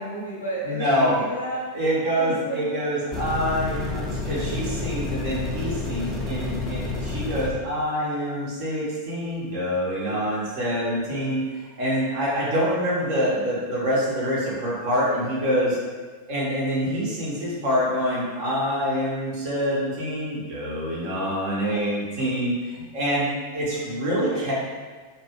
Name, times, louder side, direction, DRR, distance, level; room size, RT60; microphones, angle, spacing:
voice 1, 0.0-1.7 2.1-2.7 23.7-24.5, right 1 dB, 80° left, -4 dB, 0.6 m, -33 dB
voice 2, 0.6-1.2 1.7-15.8 16.3-24.5, equal, 50° right, -6 dB, 0.9 m, -26 dB
sound 1, 3.1-7.5, left 3 dB, 5° left, 0.5 m, -30 dB
2.5 x 2.2 x 2.9 m, 1.4 s
figure-of-eight pair, 90°, 0 cm